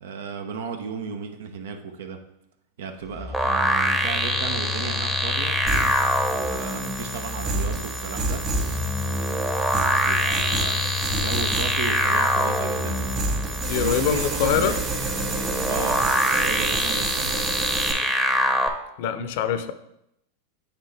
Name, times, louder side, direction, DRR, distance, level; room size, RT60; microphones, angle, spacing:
voice 1, 0.0-2.2 2.8-5.7 6.3-8.5 9.6-13.2 13.8-14.8 15.7-17.5, right 5 dB, 75° right, 6 dB, 0.8 m, -34 dB
Telephone, 3.0-7.1 8.2-13.9, left 5 dB, 10° left, 0.3 m, -33 dB
sound 1, 3.3-18.7, equal, 5° right, 0.8 m, -25 dB
sound 2, 5.7-17.9, right 3 dB, 30° right, 1.9 m, -30 dB
voice 2, 13.6-14.8 19.0-19.7, left 9 dB, 65° left, 11 dB, 0.6 m, -24 dB
8.8 x 4.1 x 3.4 m, 0.82 s
hypercardioid pair, 115°, 0 cm